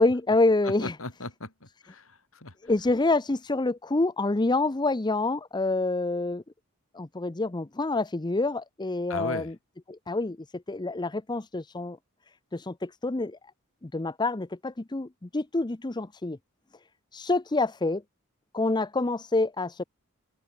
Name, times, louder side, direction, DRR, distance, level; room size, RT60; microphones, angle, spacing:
voice 1, 0.0-0.9 2.7-6.4 6.9-9.5 9.9-10.4 10.7-12.0 12.5-13.4 13.8-16.4 17.1-18.0 18.5-19.8, left 2 dB, 20° left, 0.6 m, -27 dB
voice 2, 0.6-2.5 9.1-9.5, left 2 dB, 70° left, 4.7 m, -37 dB
open air
head